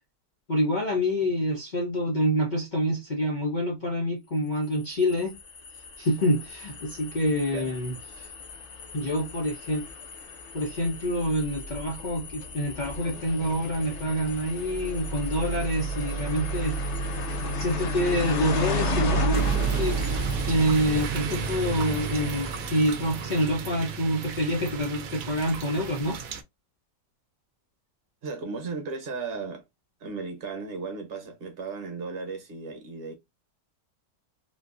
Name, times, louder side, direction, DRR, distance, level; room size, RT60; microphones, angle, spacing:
voice 1, 0.5-5.3 6.0-8.3 8.9-9.9 10.5-16.8 17.6-20.0 20.5-26.2, equal, 75° left, 0.4 m, -27 dB
sound 1, 4.7-23.2, right 1 dB, 50° left, 0.9 m, -32 dB
sound 2, 19.3-26.4, right 5 dB, 65° right, 0.9 m, -34 dB
voice 2, 28.2-29.6 30.0-33.1, right 4 dB, 40° right, 1.0 m, -35 dB
3.6 x 2.6 x 2.5 m
omnidirectional pair, 1.9 m